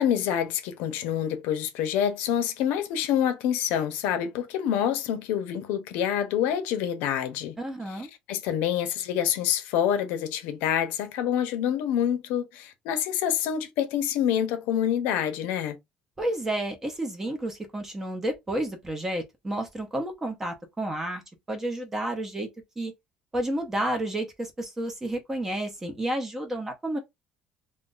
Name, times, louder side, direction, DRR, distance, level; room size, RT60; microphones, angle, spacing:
voice 1, 0.0-7.5 7.9-8.0 8.3-15.8, left 9 dB, 80° left, 0.7 m, -27 dB
voice 2, 7.6-8.1 16.2-21.2 21.5-22.5 22.8-22.9 23.3-27.0, right 1 dB, 10° right, 0.7 m, -31 dB
2.5 x 2.4 x 3.8 m
cardioid pair, 175°, 3 cm